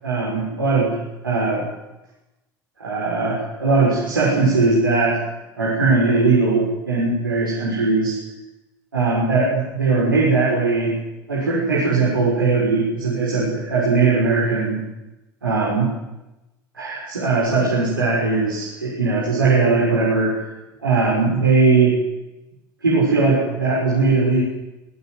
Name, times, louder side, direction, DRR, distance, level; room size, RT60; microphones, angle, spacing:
voice 1, 0.0-1.0 1.2-1.7 2.8-5.2 5.5-8.2 8.9-10.9 11.3-14.8 15.4-15.9 16.7-20.4 20.8-22.0 22.8-24.4, right 3 dB, 85° right, -5 dB, 6.2 m, -19 dB
26.5 x 17.5 x 7.9 m, 0.98 s
figure-of-eight pair, 60°, 11 cm